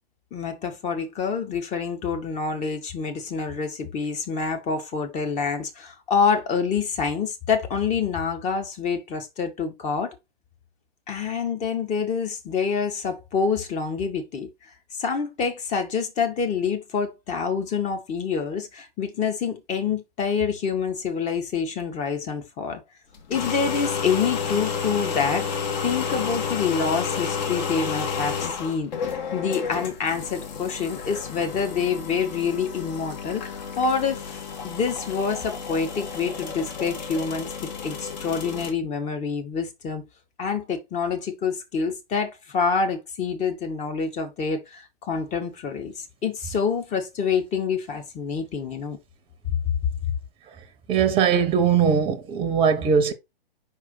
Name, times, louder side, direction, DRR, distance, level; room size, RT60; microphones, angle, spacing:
voice 1, 0.3-10.1 11.1-14.5 14.9-22.8 23.3-25.5 25.8-40.0 40.4-49.0, left 5 dB, 25° left, 1.4 m, -27 dB
sound 1, 23.1-38.7, left 6 dB, 45° left, 1.9 m, -31 dB
voice 2, 50.9-53.1, right 7 dB, 15° right, 1.0 m, -20 dB
5.2 x 4.7 x 3.9 m
figure-of-eight pair, 120°, 31 cm